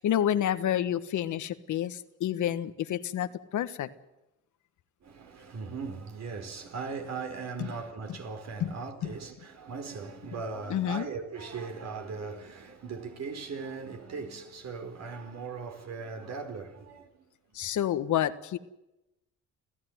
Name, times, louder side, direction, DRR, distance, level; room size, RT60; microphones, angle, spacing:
voice 1, 0.0-3.9 7.6-7.7 8.1-8.2 8.6-8.7 9.0-9.1 10.7-11.1 17.5-18.6, left 11 dB, 75° left, 1.6 m, -29 dB
voice 2, 5.0-17.7, right 4 dB, 60° right, 4.7 m, -39 dB
26.5 x 15.5 x 9.6 m
cardioid pair, 90°, 30 cm